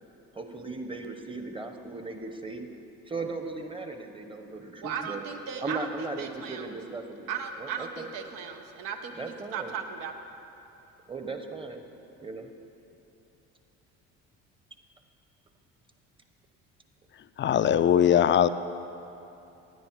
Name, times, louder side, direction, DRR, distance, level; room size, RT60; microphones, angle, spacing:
voice 1, 0.3-2.7 3.1-5.2 5.6-7.3 7.6-8.1 9.2-9.7 11.1-11.8 12.2-12.5, right 3 dB, 15° right, 5 dB, 1.0 m, -37 dB
voice 2, 4.8-6.7 7.3-10.1, right 7 dB, 70° right, 6 dB, 1.0 m, -37 dB
voice 3, 17.4-18.5, left 9 dB, 35° left, 13 dB, 0.4 m, -20 dB
9.9 x 9.5 x 4.6 m, 2.9 s
supercardioid pair, 70°, 34 cm